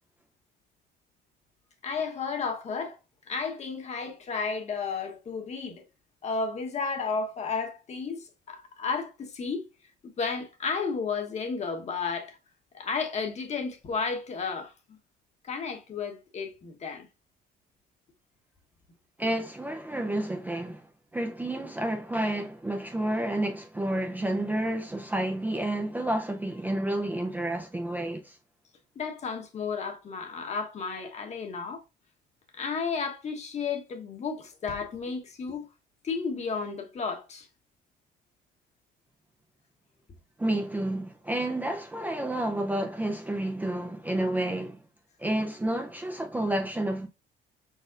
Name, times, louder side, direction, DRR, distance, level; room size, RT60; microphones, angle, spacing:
voice 1, 1.8-3.0 3.3-5.8 6.2-9.6 10.0-12.4 12.7-15.0 15.4-17.1 28.9-31.8 32.5-35.7 36.0-37.5, left 5 dB, 40° left, 1.1 m, -33 dB
voice 2, 19.2-28.4 40.4-44.8 45.2-47.1, right 1 dB, 10° right, 0.5 m, -30 dB
5.1 x 4.1 x 2.5 m
cardioid pair, 110°, 17 cm